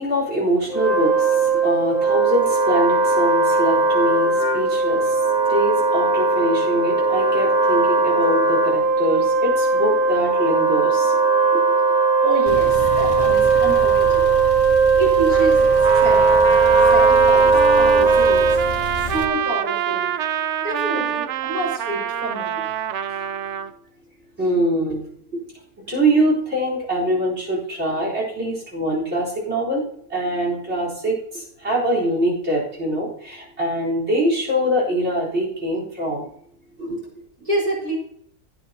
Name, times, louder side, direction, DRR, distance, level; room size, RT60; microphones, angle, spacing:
voice 1, 0.0-11.6 23.2-23.3 24.4-25.1 25.9-29.8 30.1-36.3 36.8-37.1, right 1 dB, 45° right, -3 dB, 4.6 m, -24 dB
Wind instrument woodwind instrument, 0.6-18.8, right 4 dB, 5° right, 1.9 m, -18 dB
voice 2, 12.2-14.4 15.0-16.3 16.8-18.6 18.9-20.1 20.6-22.7 37.4-37.9, right 1 dB, 25° right, -8 dB, 5.5 m, -28 dB
Male speech man speaking / Car / Idling, 12.5-19.2, left 2 dB, 25° left, 0.8 m, -31 dB
Trumpet, 15.3-23.7, right 10 dB, 65° right, 0.7 m, -26 dB
17.0 x 9.3 x 2.9 m, 0.66 s
omnidirectional pair, 1.6 m